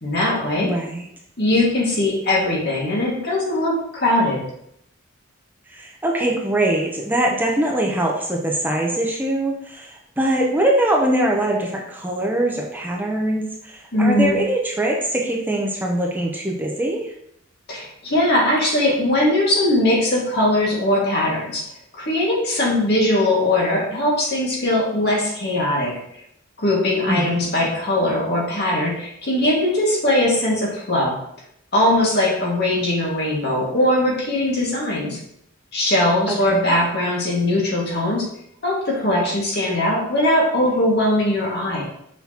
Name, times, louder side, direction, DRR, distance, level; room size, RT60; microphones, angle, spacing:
voice 1, 0.0-0.7 1.4-4.4 13.9-14.4 17.7-21.7 21.9-25.9 26.6-31.2 31.7-35.2 35.7-38.3 38.6-41.8, left 1 dB, 55° left, -3 dB, 1.9 m, -20 dB
voice 2, 0.6-1.0 5.7-17.1 27.1-27.5 36.3-36.7, right 1 dB, 10° right, -1 dB, 0.6 m, -22 dB
6.0 x 5.9 x 2.9 m, 0.74 s
head